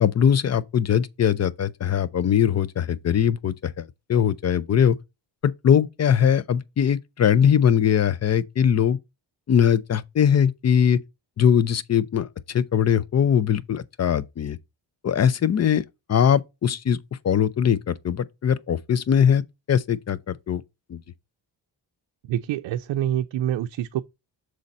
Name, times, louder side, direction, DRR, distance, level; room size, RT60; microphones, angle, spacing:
voice 1, 0.0-5.0 5.4-9.0 9.5-11.0 11.4-14.6 15.0-17.0 17.2-20.6 20.9-21.0, left 8 dB, 35° left, 0.5 m, -21 dB
voice 2, 22.3-24.0, right 11 dB, 75° right, 0.5 m, -26 dB
6.4 x 3.9 x 4.1 m
cardioid pair, 110°, 44 cm